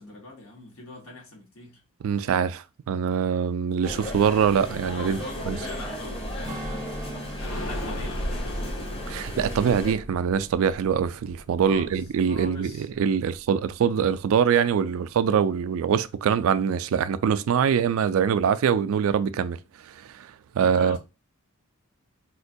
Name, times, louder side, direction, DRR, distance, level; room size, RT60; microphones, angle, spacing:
voice 1, 0.0-1.8 5.1-9.0 11.7-12.9 20.6-21.0, left 2 dB, 85° left, 1.3 m, -42 dB
voice 2, 2.0-5.2 5.5-5.6 9.1-21.0, right 7 dB, 70° right, 0.3 m, -24 dB
sound 1, 3.8-9.9, equal, 25° left, 0.7 m, -34 dB
Strum, 6.4-11.1 11.5-11.7, equal, 15° right, 0.5 m, -43 dB
sound 2, 7.4-13.0 13.3-13.4 13.7-13.8, left 1 dB, 65° left, 0.6 m, -38 dB
4.2 x 2.2 x 2.6 m
head